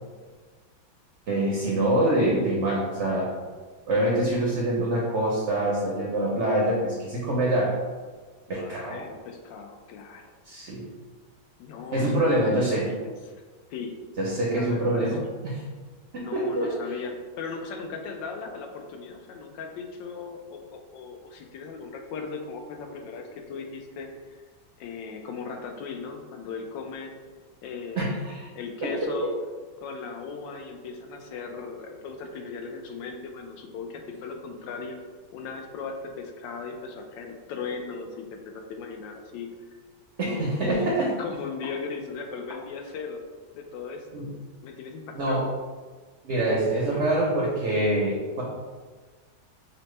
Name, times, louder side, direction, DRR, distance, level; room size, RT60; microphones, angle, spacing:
voice 1, 1.3-3.3 3.9-7.8 8.5-9.0 10.5-10.8 11.9-12.9 14.2-15.6 16.1-16.7 28.0-28.4 28.8-29.3 40.2-41.1 44.2-44.3 45.2-45.5 46.2-48.4, right 1 dB, 65° right, -3 dB, 0.7 m, -25 dB
voice 2, 8.5-10.3 11.6-13.1 13.7-13.9 14.5-15.3 16.1-24.4 24.8-27.1 27.6-28.1 28.6-29.3 29.8-35.0 35.3-39.5 40.2-43.2 43.5-44.2 44.6-45.4, left 5 dB, 80° left, 4 dB, 1.3 m, -38 dB
5.5 x 2.2 x 3.1 m, 1.4 s
omnidirectional pair, 2.0 m